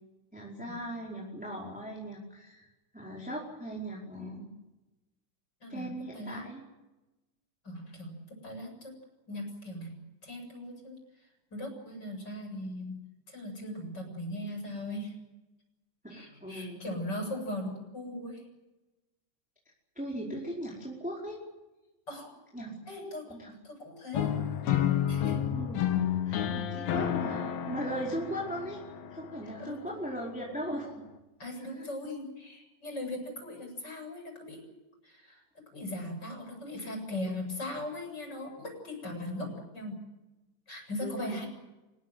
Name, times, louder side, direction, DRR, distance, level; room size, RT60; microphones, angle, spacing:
voice 1, 0.3-2.7 2.9-4.5 5.7-6.6 16.0-16.8 19.9-21.4 22.5-22.7 23.2-23.5 25.1-25.2 25.5-25.8 26.3-28.8 29.1-30.9 31.6-31.8 41.0-41.4, right 1 dB, ahead, -4 dB, 3.9 m, -38 dB
voice 2, 7.6-8.9 9.3-9.9 10.2-13.0 13.3-15.1 16.1-18.4 22.1-22.3 22.9-24.3 25.1-25.4 26.3-26.4 26.7-26.8 29.4-29.9 31.4-34.7 35.0-40.0 40.7-41.5, left 1 dB, 20° left, 3 dB, 7.7 m, -39 dB
sound 1, 24.1-30.1, left 10 dB, 60° left, 3.1 m, -31 dB
26.0 x 21.0 x 7.8 m, 1.1 s
omnidirectional pair, 5.8 m